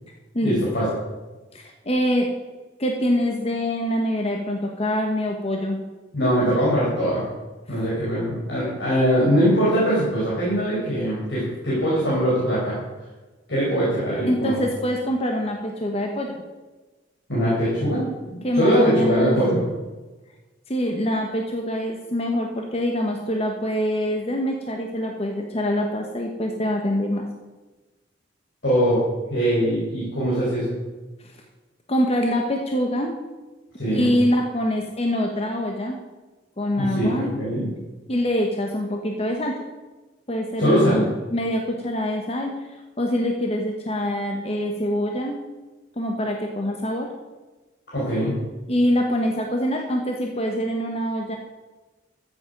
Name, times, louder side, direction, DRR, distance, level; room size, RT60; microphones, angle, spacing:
voice 1, 0.4-0.9 6.1-7.2 7.7-12.8 13.5-14.6 17.3-18.0 18.3-19.6 28.6-29.0 29.3-30.8 33.8-34.1 36.8-37.7 40.6-41.0 47.9-48.3, equal, 65° left, -7 dB, 4.5 m, -22 dB
voice 2, 1.5-2.3 2.8-5.8 7.7-7.8 14.2-16.4 18.4-19.5 20.7-27.2 31.9-33.2 33.9-36.0 36.6-37.3 38.1-39.6 40.3-45.4 46.0-47.1 48.7-51.4, equal, 35° left, 2 dB, 1.2 m, -25 dB
14.0 x 8.2 x 5.3 m, 1.2 s
head